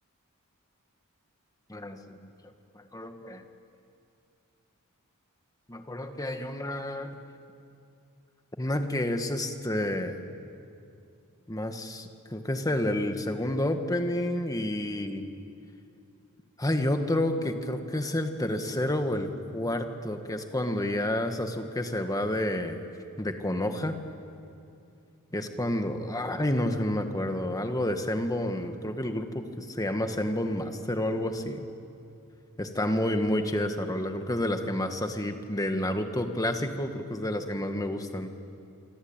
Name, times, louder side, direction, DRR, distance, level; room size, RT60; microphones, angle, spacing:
voice 1, 1.7-2.3 2.8-3.4 5.7-7.2 8.6-10.1 11.5-15.2 16.6-22.8 23.2-24.0 25.3-31.6 32.6-38.3, left 1 dB, 15° left, 6 dB, 1.7 m, -29 dB
26.5 x 25.5 x 8.9 m, 2.6 s
head